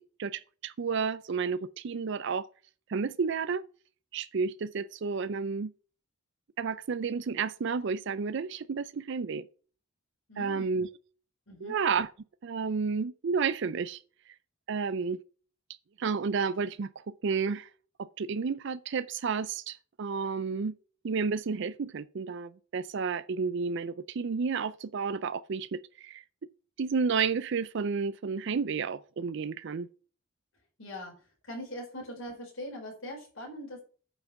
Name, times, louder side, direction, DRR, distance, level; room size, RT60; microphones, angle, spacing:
voice 1, 0.0-2.5 2.9-3.7 4.1-5.7 6.6-9.5 10.4-10.9 11.6-12.1 12.4-14.3 14.7-15.2 16.0-17.7 18.0-20.8 21.0-26.2 26.8-29.9, right 5 dB, 60° right, 0.4 m, -31 dB
voice 2, 10.3-10.7 11.5-11.7 30.8-31.1 31.4-33.8, equal, 75° left, 4.6 m, -41 dB
8.9 x 6.0 x 5.7 m
head